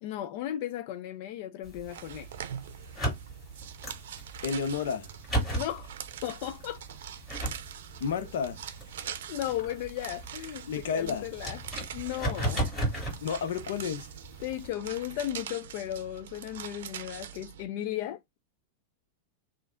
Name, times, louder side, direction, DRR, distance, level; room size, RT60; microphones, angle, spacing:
voice 1, 0.0-2.3 5.6-5.9 6.2-6.8 9.3-11.6 11.9-12.7 14.4-18.4, left 12 dB, 55° left, 0.4 m, -35 dB
sound 1, 1.6-14.7, right 1 dB, 10° left, 2.1 m, -37 dB
sound 2, 1.9-17.7, right 9 dB, 80° right, 0.5 m, -43 dB
voice 2, 4.4-5.1 8.0-8.6 10.7-11.3 13.2-14.1, left 6 dB, 80° left, 0.8 m, -31 dB
3.2 x 2.5 x 3.7 m
supercardioid pair, 150°, 0 cm